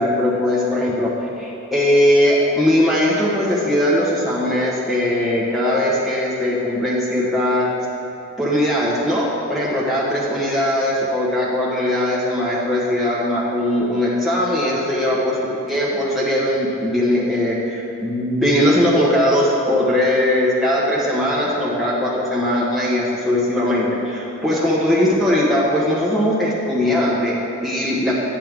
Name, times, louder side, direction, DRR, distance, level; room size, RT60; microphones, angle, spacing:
voice 1, 0.0-7.7 8.4-28.1, left 1 dB, ahead, -8 dB, 1.4 m, -19 dB
9.4 x 6.7 x 3.7 m, 2.9 s
head